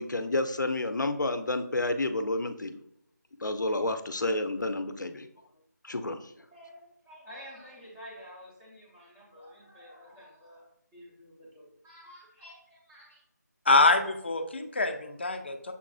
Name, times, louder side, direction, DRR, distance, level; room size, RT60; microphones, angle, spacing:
voice 1, 0.0-2.8 3.4-5.3 5.8-6.3, left 2 dB, 90° left, 9 dB, 0.5 m, -30 dB
voice 2, 6.5-13.2, equal, 10° right, -7 dB, 0.6 m, -50 dB
voice 3, 13.7-15.7, left 2 dB, 35° left, 7 dB, 0.4 m, -25 dB
6.8 x 2.5 x 2.3 m, 0.78 s
figure-of-eight pair, 170°, 10 cm